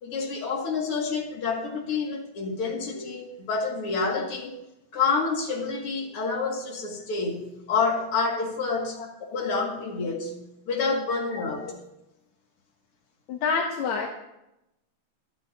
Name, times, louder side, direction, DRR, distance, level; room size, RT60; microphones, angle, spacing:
voice 1, 0.0-4.5 4.9-9.0 9.3-11.7, left 4 dB, 50° left, -1 dB, 3.0 m, -28 dB
voice 2, 13.3-14.1, left 5 dB, 75° left, 1 dB, 2.3 m, -27 dB
25.0 x 9.5 x 2.8 m, 0.90 s
omnidirectional pair, 3.4 m